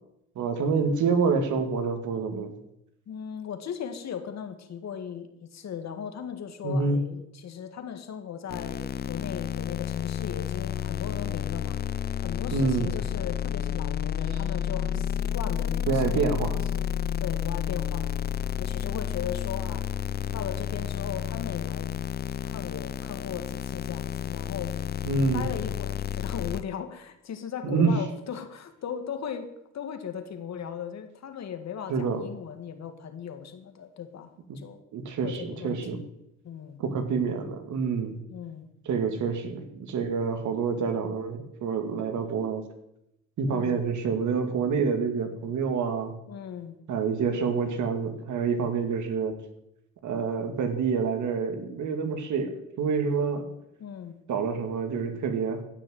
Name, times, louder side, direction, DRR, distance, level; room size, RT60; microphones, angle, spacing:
voice 1, 0.4-2.5 6.6-7.0 12.5-12.9 15.9-16.6 25.1-25.5 27.6-28.0 31.9-32.2 34.9-36.0 36.8-38.2 38.9-42.6 43.4-46.2 46.9-49.3 50.0-53.5 54.3-55.6, right 5 dB, 75° right, 6 dB, 2.3 m, -27 dB
voice 2, 3.1-11.8 12.2-16.9 17.2-18.2 18.6-19.9 20.3-21.9 22.4-24.8 25.3-34.8 35.2-36.1 36.4-36.8 38.3-38.7 43.5-43.8 46.3-46.8 53.8-54.2, left 8 dB, 60° left, 8 dB, 1.9 m, -38 dB
sound 1, 8.5-26.6, left 9 dB, 35° left, 0.5 m, -31 dB
14.5 x 6.3 x 9.3 m, 0.82 s
cardioid pair, 90°, 30 cm